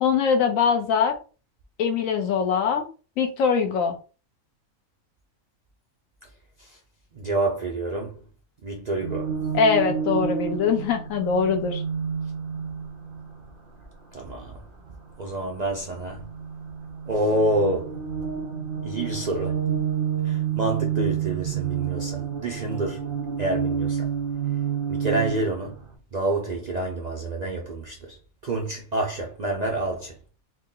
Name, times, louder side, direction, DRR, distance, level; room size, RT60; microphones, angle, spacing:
voice 1, 0.0-1.1 1.8-2.8 3.2-3.9 9.5-11.8, left 6 dB, 75° left, 1.1 m, -22 dB
voice 2, 7.1-8.2 8.6-9.3 14.1-14.6 15.2-16.2 17.1-18.0 18.8-19.6 20.2-23.1 23.4-24.1 24.9-25.8 26.1-28.2 28.4-30.1, right 2 dB, 65° right, 0.4 m, -28 dB
sound 1, 9.0-13.2 16.2-25.5, right 7 dB, 45° right, 0.9 m, -29 dB
3.9 x 2.1 x 3.7 m
omnidirectional pair, 1.5 m